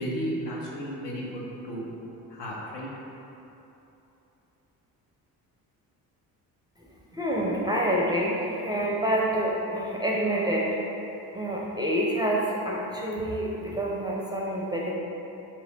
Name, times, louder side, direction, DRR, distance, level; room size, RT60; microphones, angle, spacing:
voice 1, 0.0-1.9 2.3-2.9, equal, 65° left, -5 dB, 1.0 m, -33 dB
voice 2, 7.1-10.7 11.3-14.9, right 1 dB, 10° right, -4 dB, 0.5 m, -27 dB
3.1 x 3.0 x 3.8 m, 3.0 s
hypercardioid pair, 55°, 46 cm